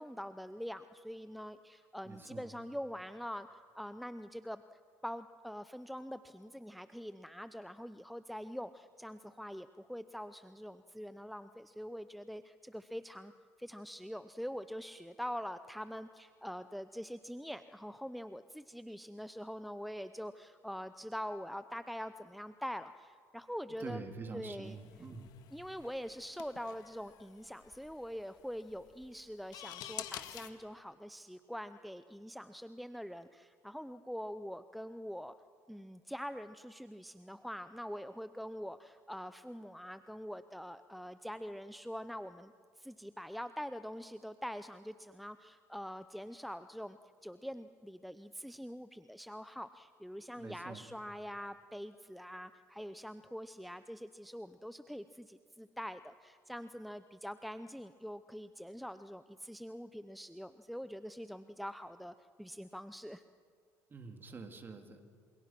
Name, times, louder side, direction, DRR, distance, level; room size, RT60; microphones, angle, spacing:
voice 1, 0.0-4.6 5.0-13.3 13.6-24.0 24.3-24.8 25.5-35.3 35.7-63.2, equal, ahead, 12 dB, 0.7 m, -44 dB
voice 2, 2.0-2.5 23.8-25.3 50.3-50.9 63.9-65.0, right 4 dB, 30° right, 5 dB, 3.4 m, -46 dB
sound 1, 24.6-30.5, left 12 dB, 70° left, 1.8 m, -49 dB
28.0 x 27.5 x 6.1 m, 2.1 s
supercardioid pair, 90°, 7 cm